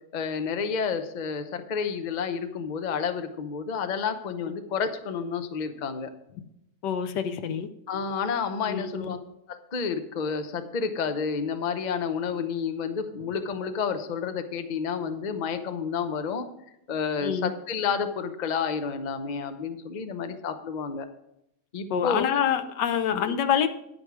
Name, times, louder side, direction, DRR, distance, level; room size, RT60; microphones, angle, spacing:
voice 1, 0.1-6.1 7.9-9.2 9.5-16.5 16.9-21.1 21.7-22.2 23.1-23.3, left 6 dB, 40° left, 8 dB, 0.6 m, -30 dB
voice 2, 6.8-7.7 8.7-9.1 17.2-17.5 21.9-23.7, left 8 dB, 85° left, 10 dB, 1.4 m, -26 dB
9.8 x 8.9 x 4.8 m, 0.81 s
omnidirectional pair, 1.8 m